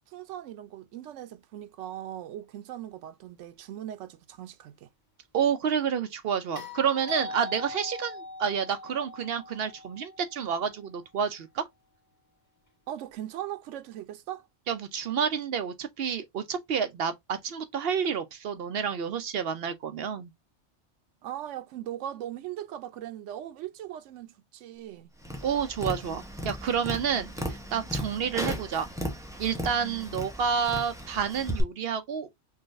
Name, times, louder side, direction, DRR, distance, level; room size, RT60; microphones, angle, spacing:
voice 1, 0.1-4.9 12.9-14.5 21.2-25.1, right 12 dB, 90° right, 0.9 m, -39 dB
voice 2, 5.3-11.7 14.7-20.3 25.4-28.9 29.4-32.4, right 7 dB, 65° right, 0.7 m, -29 dB
sound 1, 6.5-10.8 13.1-13.2, left 2 dB, 15° left, 1.8 m, -41 dB
Tap, 25.2-31.6, equal, 5° right, 0.7 m, -36 dB
3.8 x 3.2 x 2.5 m
omnidirectional pair, 1.2 m